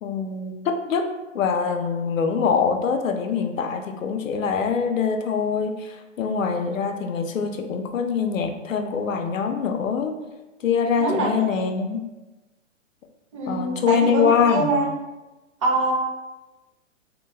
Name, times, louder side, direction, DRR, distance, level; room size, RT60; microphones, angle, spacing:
voice 1, 0.0-10.1 10.6-12.0 13.5-14.7, left 6 dB, 85° left, 5 dB, 0.5 m, -24 dB
voice 2, 11.0-11.7 13.3-14.9 15.6-15.9, right 2 dB, 25° right, -2 dB, 0.4 m, -24 dB
2.2 x 2.0 x 3.2 m, 1.1 s
hypercardioid pair, 135°, 39 cm